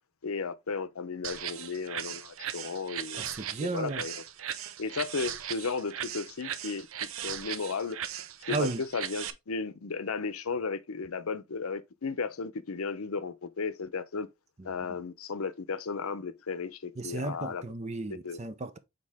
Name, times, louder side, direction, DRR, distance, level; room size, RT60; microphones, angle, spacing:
voice 1, 0.2-3.2 3.6-4.2 4.8-8.0 8.5-14.3 14.6-17.6 18.2-18.4, left 4 dB, 90° left, 0.7 m, -34 dB
sound 1, 1.2-9.3, right 9 dB, 75° right, 0.6 m, -38 dB
voice 2, 3.2-4.0 8.5-8.8 17.0-18.8, right 3 dB, 30° right, 0.6 m, -34 dB
6.5 x 4.3 x 3.6 m
head